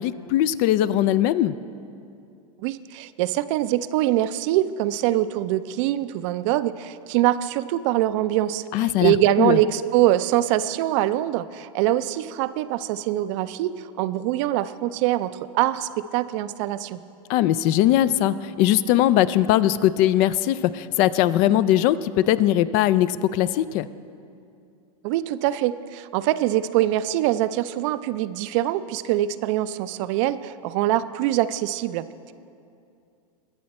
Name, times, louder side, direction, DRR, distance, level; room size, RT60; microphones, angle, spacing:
voice 1, 0.0-1.6 8.7-9.6 17.3-23.9, left 12 dB, 45° left, 16 dB, 0.4 m, -20 dB
voice 2, 2.6-17.0 25.0-32.3, right 14 dB, 55° right, 13 dB, 0.5 m, -24 dB
21.5 x 7.6 x 4.2 m, 2.5 s
hypercardioid pair, 115°, 19 cm